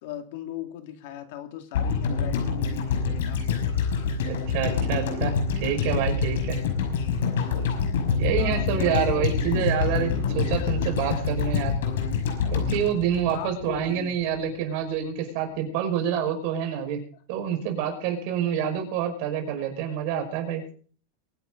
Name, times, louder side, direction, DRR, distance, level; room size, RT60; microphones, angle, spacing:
voice 1, 0.0-3.4 8.4-9.6 13.3-14.1, left 11 dB, 60° left, 7 dB, 2.3 m, -38 dB
sound 1, 1.7-13.9 14.2-14.3, left 5 dB, 90° left, 5.6 m, -26 dB
voice 2, 4.3-6.6 8.2-11.7 12.5-17.0 17.3-20.6, right 9 dB, 50° right, 4 dB, 5.4 m, -27 dB
23.5 x 11.0 x 3.9 m, 0.43 s
supercardioid pair, 165°, 0 cm